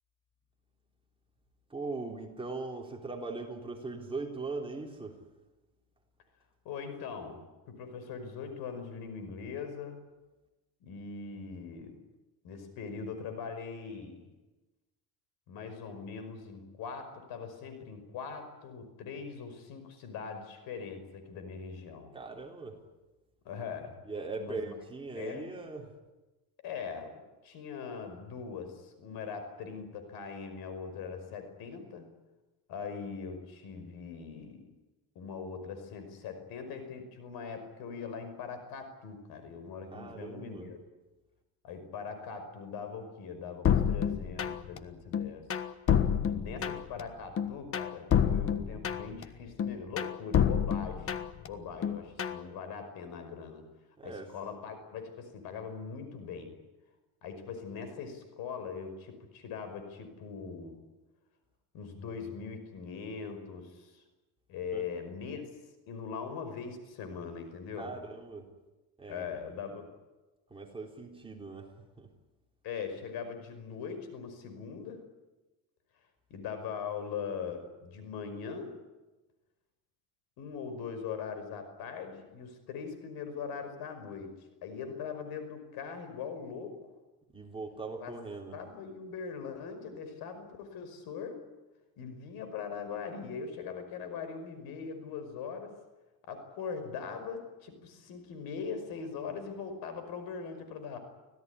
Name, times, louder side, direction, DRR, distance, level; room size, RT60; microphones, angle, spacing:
voice 1, 1.7-5.2 22.1-22.8 24.0-25.9 39.9-40.7 54.0-54.3 64.7-64.8 67.8-68.5 69.0-69.7 70.5-71.7 72.0-72.1 87.3-88.6, right 3 dB, 15° right, 0 dB, 3.8 m, -40 dB
voice 2, 6.7-10.0 10.8-12.0 12.4-14.3 15.5-22.1 23.4-24.1 24.4-24.7 25.1-25.5 26.6-32.1 32.7-34.7 35.2-40.8 41.6-45.5 46.2-51.2 51.5-53.7 54.0-56.6 57.2-60.8 61.7-64.0 64.5-65.4 65.9-67.9 69.1-69.9 72.6-75.0 76.3-78.8 80.4-84.3 84.6-86.8 88.0-88.1 88.5-91.4 92.0-95.8 96.3-101.0, left 6 dB, 70° left, 9 dB, 5.5 m, -41 dB
sound 1, 43.6-44.8 45.1-47.0 47.4-49.2 49.6-51.5 51.8-52.4, left 8 dB, 35° left, 1.4 m, -28 dB
25.5 x 17.0 x 9.8 m, 1.1 s
cardioid pair, 130°, 39 cm